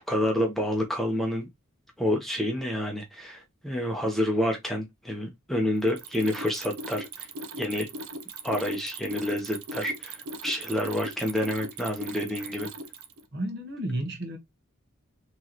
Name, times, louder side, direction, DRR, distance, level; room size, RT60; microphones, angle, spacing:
voice 1, 0.1-1.5 2.0-7.3 7.6-7.9 8.4-12.7, left 1 dB, ahead, 0.8 m, -28 dB
Mechanisms, 5.8-13.2, right 2 dB, 80° right, 0.8 m, -39 dB
voice 2, 13.3-14.4, right 1 dB, 50° right, 1.3 m, -32 dB
4.4 x 3.1 x 2.9 m
head